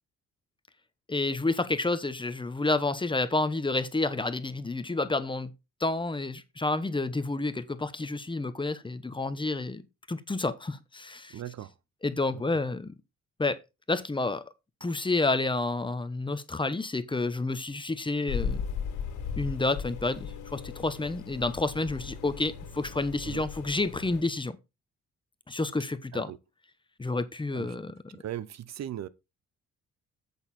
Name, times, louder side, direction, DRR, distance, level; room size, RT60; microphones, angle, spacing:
voice 1, 1.1-5.5 5.8-11.4 12.0-12.9 13.4-13.6 13.9-14.4 14.8-18.6 19.4-24.6 25.5-26.3 27.0-27.9, left 2 dB, 15° left, 1.0 m, -29 dB
voice 2, 11.3-11.7 23.2-23.4 26.1-26.4 27.5-27.7 28.2-29.1, right 11 dB, 60° right, 0.7 m, -38 dB
sound 1, 18.3-24.2, left 6 dB, 90° left, 2.3 m, -37 dB
8.1 x 6.6 x 4.3 m
cardioid pair, 90°, 30 cm